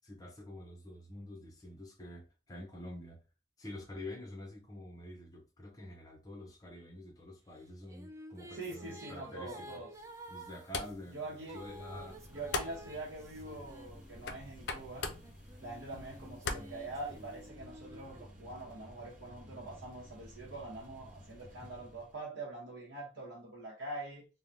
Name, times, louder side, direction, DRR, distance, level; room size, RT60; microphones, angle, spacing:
voice 1, 0.0-3.2 3.6-9.8 10.3-12.2 21.6-21.7, left 1 dB, 20° left, 0.7 m, -47 dB
sound 1, 7.6-14.6 15.2-18.9, right 1 dB, 15° right, 0.3 m, -52 dB
voice 2, 8.5-9.9 11.1-11.7 12.3-15.1 15.6-24.3, right 2 dB, 85° right, 0.8 m, -44 dB
sound 2, 9.9-17.5, left 4 dB, 65° left, 0.4 m, -44 dB
sound 3, 11.4-22.2, equal, 45° right, 0.7 m, -54 dB
3.2 x 2.1 x 2.6 m
head